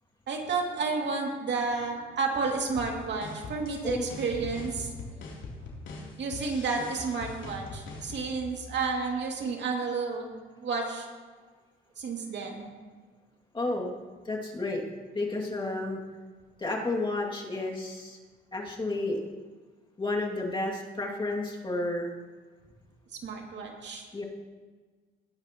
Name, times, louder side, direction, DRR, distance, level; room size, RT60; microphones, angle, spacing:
voice 1, 0.3-4.9 6.2-11.1 12.0-12.7 23.2-24.1, right 4 dB, 60° right, 0 dB, 2.5 m, -31 dB
sound 1, 2.5-9.0, left 3 dB, 75° left, 3.1 m, -42 dB
voice 2, 13.5-14.0 14.2-14.8 15.1-16.0 16.6-18.2 18.5-19.2 20.0-22.1 24.1-24.2, left 2 dB, 25° left, -2 dB, 2.4 m, -31 dB
20.0 x 10.0 x 3.0 m, 1.4 s
cardioid pair, 90°, 20 cm